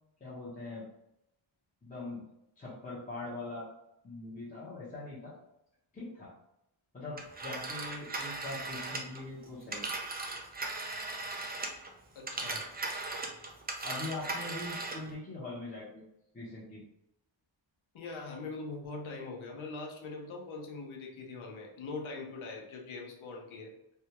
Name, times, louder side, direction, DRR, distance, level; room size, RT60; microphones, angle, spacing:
voice 1, 0.2-0.9 1.8-2.2 2.6-3.7 4.0-5.3 5.9-6.3 6.9-9.9 13.8-16.0 16.3-16.8, left 2 dB, 15° left, -8 dB, 0.8 m, -42 dB
Telephone, 7.2-11.9 12.2-15.1, right 3 dB, 20° right, 0.3 m, -38 dB
voice 2, 12.1-12.6 17.9-23.7, left 3 dB, 85° left, 0 dB, 0.8 m, -42 dB
3.4 x 2.3 x 2.8 m, 0.84 s
wide cardioid pair, 160°, 47 cm